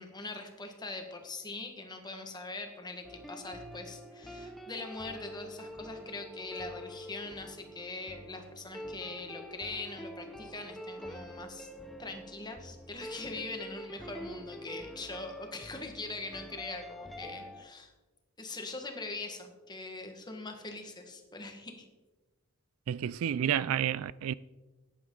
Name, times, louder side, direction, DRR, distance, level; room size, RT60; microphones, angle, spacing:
voice 1, 0.0-11.7 12.0-17.9 18.4-21.9, left 3 dB, 20° left, 1.5 m, -42 dB
sound 1, 3.0-17.6, equal, ahead, 0.9 m, -46 dB
voice 2, 22.9-24.3, right 9 dB, 65° right, 0.3 m, -30 dB
14.5 x 10.0 x 3.9 m
head